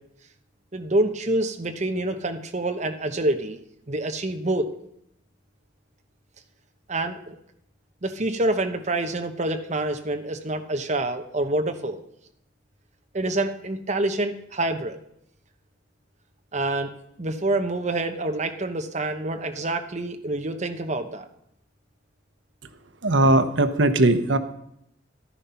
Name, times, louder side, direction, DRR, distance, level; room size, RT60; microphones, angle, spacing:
voice 1, 0.7-3.6 3.9-4.7 6.9-7.3 8.0-12.0 13.1-15.0 16.5-16.9 17.2-21.2, right 2 dB, 40° right, 6 dB, 1.1 m, -27 dB
voice 2, 23.0-24.4, right 2 dB, 90° right, 10 dB, 1.0 m, -19 dB
14.5 x 12.0 x 5.7 m, 0.75 s
head